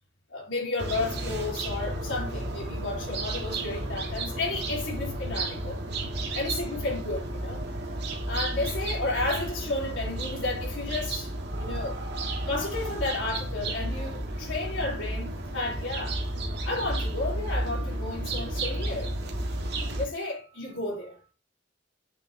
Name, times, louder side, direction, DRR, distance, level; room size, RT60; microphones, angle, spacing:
voice 1, 0.3-5.8 6.3-7.7 8.1-12.0 12.5-16.2 16.6-19.1 20.0-21.2, left 2 dB, 80° left, 3.8 m, -32 dB
sound 1, 0.8-20.0, right 1 dB, 60° right, 1.9 m, -32 dB
8.7 x 6.4 x 2.9 m
head